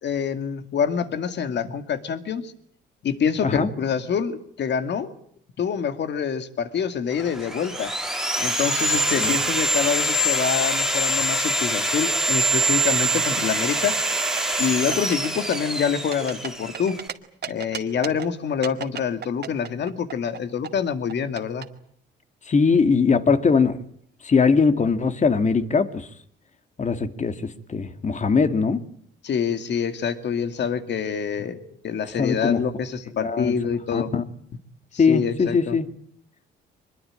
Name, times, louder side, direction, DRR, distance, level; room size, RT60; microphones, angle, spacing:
voice 1, 0.0-2.5 3.0-5.1 5.6-7.9 8.4-14.0 14.6-17.0 17.5-21.6 29.2-31.6 31.8-34.2 34.9-35.8, left 7 dB, 60° left, 9 dB, 2.3 m, -26 dB
Sawing, 7.2-17.1, right 1 dB, ahead, 2.5 m, -24 dB
sound 1, 12.7-13.5 13.8-14.6 14.9-15.3 15.5-17.1 17.4-18.3 18.6-20.4 20.6-21.6, right 8 dB, 55° right, 2.2 m, -34 dB
voice 2, 22.5-23.8 24.2-26.1 26.8-28.8 32.2-32.6 33.2-33.5 33.9-34.2 35.0-35.9, left 5 dB, 35° left, 9 dB, 2.2 m, -21 dB
23.5 x 21.5 x 9.0 m, 0.65 s
cardioid pair, 90°, 20 cm